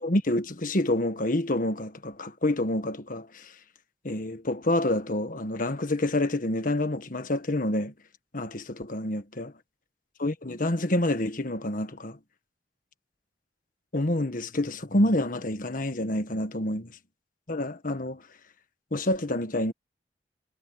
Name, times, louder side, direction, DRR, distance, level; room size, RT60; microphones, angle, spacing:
voice 1, 0.0-3.5 4.0-7.9 8.3-9.5 10.2-12.2 13.9-17.0 17.5-18.2 18.9-19.7, left 1 dB, 50° left, 1.5 m, -28 dB
head